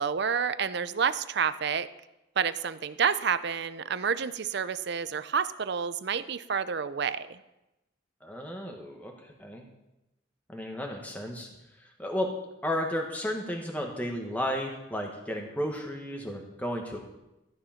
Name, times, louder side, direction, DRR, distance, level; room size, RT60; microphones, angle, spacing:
voice 1, 0.0-1.9 2.4-7.4, right 6 dB, 55° right, 14 dB, 0.6 m, -29 dB
voice 2, 8.2-9.7 10.5-11.5 11.8-12.3 12.6-17.0, equal, 10° left, 1 dB, 1.4 m, -33 dB
14.0 x 9.8 x 5.8 m, 0.97 s
head